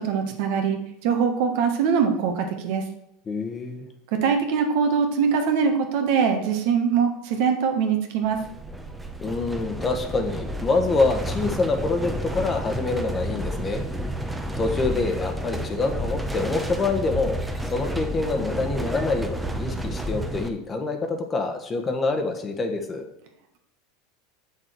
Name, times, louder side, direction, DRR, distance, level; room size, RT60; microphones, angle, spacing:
voice 1, 0.0-2.8 4.1-8.4, right 6 dB, 65° right, 5 dB, 1.5 m, -23 dB
voice 2, 3.3-3.9 9.2-13.8 14.6-23.0, left 3 dB, 25° left, 5 dB, 1.2 m, -26 dB
sound 1, 8.3-20.5, right 1 dB, 5° right, 0.8 m, -31 dB
7.5 x 6.5 x 4.6 m, 0.79 s
supercardioid pair, 125°, 0 cm